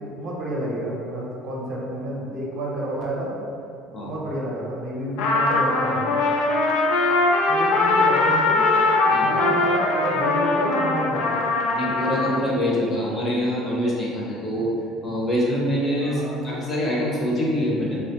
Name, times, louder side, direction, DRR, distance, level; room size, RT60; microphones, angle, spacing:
voice 1, 0.0-3.3 4.0-6.3 7.5-8.6 9.1-11.4 16.0-16.4, right 1 dB, 45° right, -4 dB, 0.6 m, -30 dB
Trumpet, 5.2-12.4, left 3 dB, 75° left, 0.4 m, -21 dB
voice 2, 11.7-14.7 15.0-18.0, equal, 25° left, -5 dB, 0.5 m, -25 dB
3.4 x 2.1 x 2.8 m, 2.5 s
cardioid pair, 160°, 0 cm